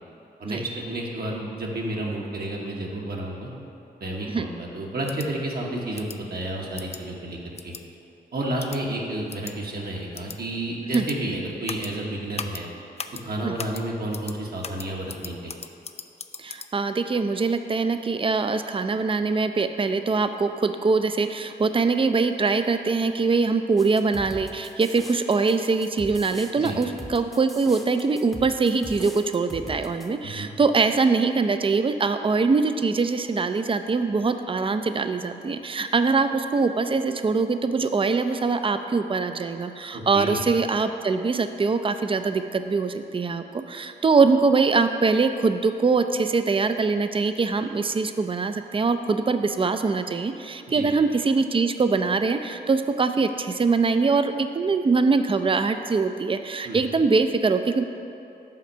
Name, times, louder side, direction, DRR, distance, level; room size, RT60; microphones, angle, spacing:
voice 1, 0.4-3.5 4.0-7.7 8.3-12.7 13.2-15.5 26.6-26.8 30.2-30.5 39.9-40.4 50.7-50.9 56.6-56.8, right 1 dB, 60° right, -2 dB, 1.1 m, -31 dB
sound 1, 5.1-5.3 6.0-6.2 6.8-7.0 7.6-7.8 8.6-8.8 9.3-9.5 10.1-10.4 10.9-11.2 11.7-11.9 12.4-12.6 13.0-13.2 13.6-13.8 14.1-14.4 14.6-16.7, left 6 dB, 35° left, 0.4 m, -37 dB
voice 2, 16.4-57.8, right 4 dB, 30° right, 9 dB, 0.4 m, -23 dB
sound 2, 23.8-30.1, equal, ahead, 0.8 m, -41 dB
5.7 x 4.3 x 6.1 m, 2.7 s
cardioid pair, 50°, 18 cm